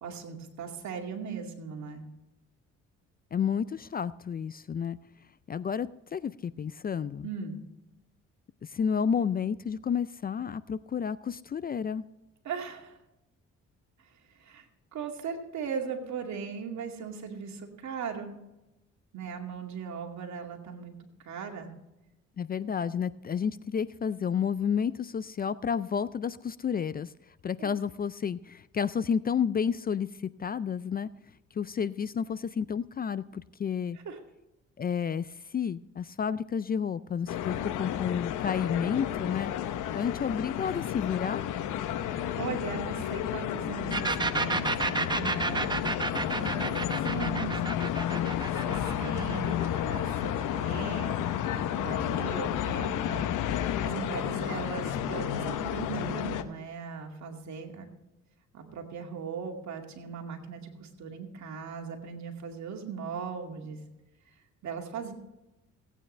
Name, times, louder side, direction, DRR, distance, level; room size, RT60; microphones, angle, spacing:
voice 1, 0.0-2.0 7.2-7.6 12.4-13.0 14.0-14.7 14.9-18.3 19.1-20.9 21.2-21.7 27.6-27.8 34.0-34.2 42.0-45.7 46.1-47.6 48.5-49.6 49.9-53.3 53.6-57.9 58.5-63.8 64.6-65.1, right 6 dB, 65° right, 2 dB, 2.4 m, -38 dB
voice 2, 3.3-5.0 5.5-7.3 8.6-12.0 22.4-27.1 27.4-30.1 30.4-31.1 31.5-34.0 34.8-39.5 39.9-41.5, left 7 dB, 30° left, 17 dB, 0.4 m, -31 dB
sound 1, 37.3-56.4, left 10 dB, 85° left, 0.9 m, -31 dB
sound 2, 43.9-51.4, right 3 dB, 15° right, 0.8 m, -31 dB
17.0 x 9.1 x 3.3 m, 0.94 s
cardioid pair, 90°, 30 cm